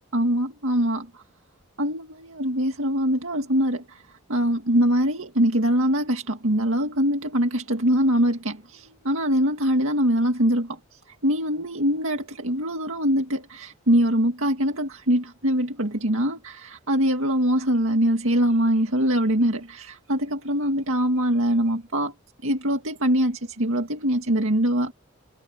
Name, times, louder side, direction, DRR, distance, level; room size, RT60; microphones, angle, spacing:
voice 1, 0.1-1.2 1.8-4.0 4.3-10.8 11.2-22.1 22.4-24.9, equal, 70° right, 2.1 m, -23 dB
head